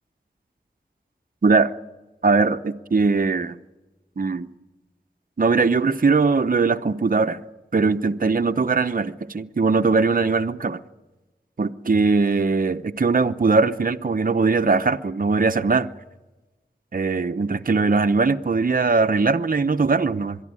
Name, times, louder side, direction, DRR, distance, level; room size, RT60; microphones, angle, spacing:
voice 1, 2.2-3.6 4.2-4.5 5.4-7.4 7.7-10.8 11.6-15.9 16.9-20.4, right 4 dB, 50° right, 0.7 m, -20 dB
23.0 x 12.5 x 9.6 m
wide cardioid pair, 75°, 18 cm